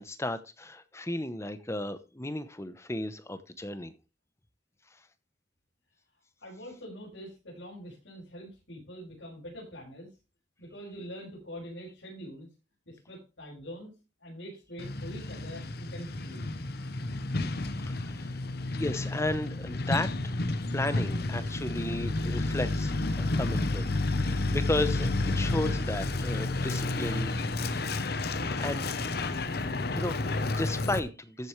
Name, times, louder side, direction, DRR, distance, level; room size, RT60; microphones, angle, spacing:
voice 1, 0.0-3.9 17.8-18.4 18.7-27.5 28.6-29.2 29.9-31.5, left 1 dB, 15° left, 0.8 m, -34 dB
voice 2, 6.4-10.2 10.6-12.5 12.9-13.9 14.2-16.5, equal, 80° left, 5.9 m, -44 dB
Truck, 14.8-31.0, left 2 dB, 55° left, 0.9 m, -31 dB
14.0 x 7.9 x 3.3 m
head